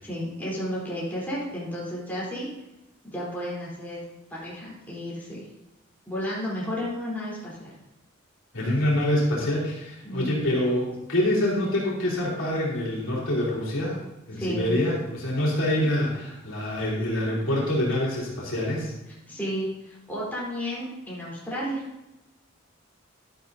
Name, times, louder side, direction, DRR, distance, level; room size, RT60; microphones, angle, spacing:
voice 1, 0.0-2.5 3.0-4.0 4.3-5.4 6.1-7.7 10.0-10.5 14.3-14.7 19.3-21.8, equal, 10° left, -7 dB, 3.7 m, -32 dB
voice 2, 8.5-14.0 14.3-18.9, left 1 dB, 65° left, -4 dB, 3.6 m, -26 dB
12.0 x 11.5 x 2.7 m, 0.95 s
head